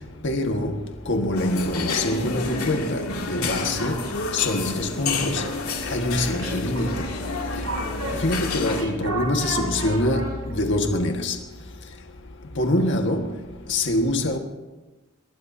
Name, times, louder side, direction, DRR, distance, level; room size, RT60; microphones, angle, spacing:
voice 1, 0.2-3.0 3.3-4.0 4.3-5.4 5.9-7.0 8.2-11.4 12.6-13.3 13.7-14.4, left 1 dB, 60° left, 1.6 m, -24 dB
sound 1, 1.3-8.8, left 3 dB, 90° left, 2.7 m, -29 dB
sound 2, 5.8-10.9, right 1 dB, 80° right, 7.0 m, -33 dB
24.0 x 21.5 x 2.8 m
head